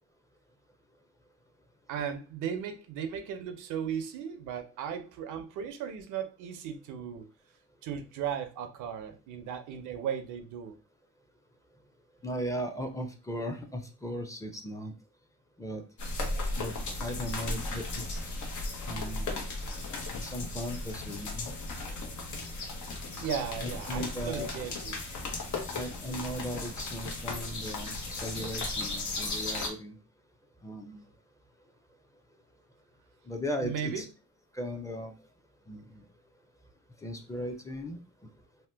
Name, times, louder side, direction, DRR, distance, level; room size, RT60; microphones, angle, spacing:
voice 1, 1.9-7.3 7.8-10.8 23.1-25.0 33.6-34.0, right 8 dB, 85° right, 0.6 m, -36 dB
voice 2, 12.2-14.9 15.6-15.8 16.6-18.2 18.9-19.5 20.2-21.5 23.6-24.5 25.7-29.9 30.6-31.1 33.3-34.1 34.5-35.1 35.7-36.0 37.0-38.0, equal, 10° left, 0.6 m, -37 dB
sound 1, 16.0-29.7, left 2 dB, 75° left, 1.0 m, -36 dB
2.9 x 2.2 x 3.3 m
cardioid pair, 90°, 30 cm